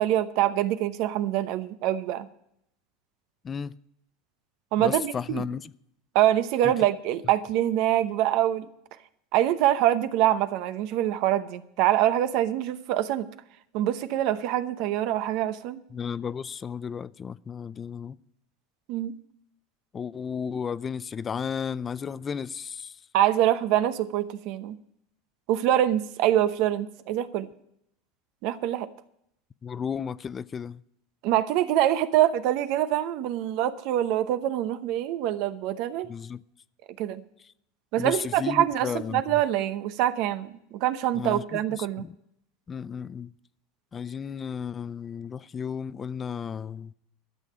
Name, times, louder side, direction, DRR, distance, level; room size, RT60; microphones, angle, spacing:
voice 1, 0.0-2.3 4.7-5.5 6.1-8.7 9.3-13.3 13.7-15.8 18.9-19.1 23.1-24.8 25.5-27.5 28.4-28.9 31.2-36.1 37.0-37.2 37.9-42.0, right 12 dB, 60° right, 0.8 m, -25 dB
voice 2, 4.8-5.7 6.6-6.7 15.9-18.2 19.9-23.0 29.6-30.8 36.1-36.4 38.0-39.2 41.1-42.1 42.7-43.3 43.9-46.9, left 7 dB, 25° left, 0.4 m, -33 dB
13.0 x 6.8 x 8.5 m
supercardioid pair, 115°, 0 cm